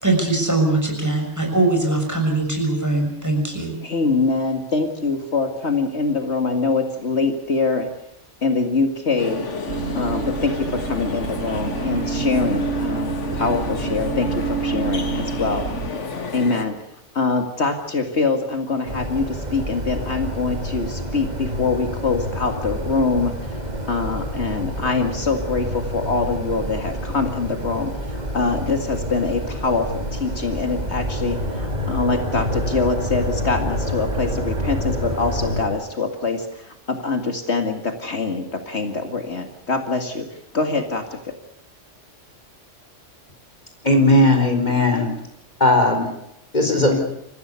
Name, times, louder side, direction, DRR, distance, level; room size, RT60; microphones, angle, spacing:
voice 1, 0.0-3.7, right 2 dB, 15° right, 1 dB, 6.4 m, -21 dB
voice 2, 3.8-7.9 8.4-9.5 9.9-15.7 16.3-16.7 17.1-23.3 23.9-40.3 40.5-41.3, left 4 dB, 70° left, 5 dB, 2.3 m, -24 dB
sound 1, 9.2-16.7, left 4 dB, 85° left, 2.0 m, -31 dB
sound 2, 9.7-15.9, right 5 dB, 75° right, 1.4 m, -27 dB
sound 3, 18.8-35.7, equal, 35° right, 3.0 m, -28 dB
voice 3, 43.8-45.1 45.6-46.0 46.5-47.0, left 1 dB, 40° left, 4 dB, 4.4 m, -16 dB
27.0 x 15.5 x 8.3 m, 0.76 s
omnidirectional pair, 1.2 m